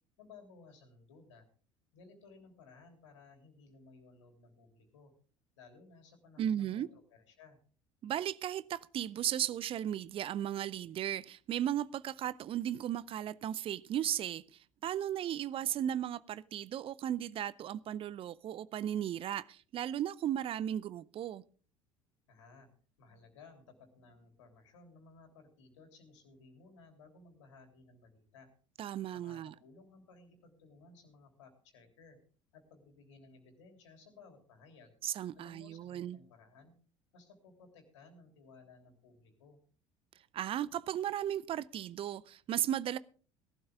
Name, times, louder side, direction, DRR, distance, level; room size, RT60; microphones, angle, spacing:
voice 1, 0.2-1.5 1.9-5.1 5.6-7.6 22.3-22.7 23.0-28.5 29.1-32.2 32.5-35.0 35.3-36.8 37.1-39.6, left 4 dB, 70° left, 3.3 m, -58 dB
voice 2, 6.4-6.9 8.0-21.4 28.8-29.5 35.0-36.2 40.3-43.0, right 11 dB, 35° right, 0.6 m, -36 dB
18.0 x 12.0 x 3.6 m
figure-of-eight pair, 65°, 16 cm